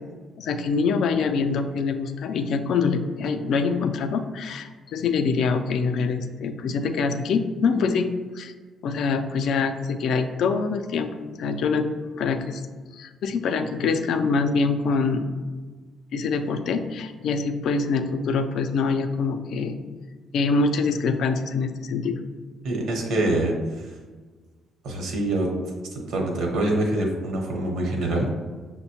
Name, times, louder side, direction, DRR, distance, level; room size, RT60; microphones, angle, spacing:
voice 1, 0.4-8.5 8.8-11.9 12.2-12.6 12.9-15.3 16.1-19.8 20.3-22.2, left 4 dB, 75° left, 8 dB, 0.3 m, -25 dB
voice 2, 22.6-23.9 24.8-25.5 25.9-28.3, right 1 dB, 80° right, 0 dB, 0.9 m, -25 dB
6.0 x 2.1 x 2.8 m, 1.4 s
cardioid pair, 90°, 0 cm